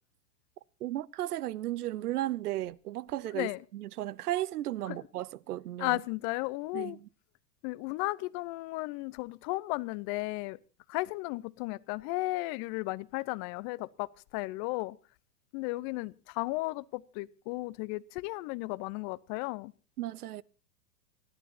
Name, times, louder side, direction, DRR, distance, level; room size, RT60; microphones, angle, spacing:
voice 1, 0.8-6.0 6.7-7.1 20.0-20.4, right 14 dB, 70° right, 0.8 m, -35 dB
voice 2, 5.8-7.0 7.6-10.6 10.9-15.0 15.5-19.7, left 21 dB, 35° left, 0.7 m, -34 dB
28.5 x 12.0 x 2.8 m
hypercardioid pair, 110°, 48 cm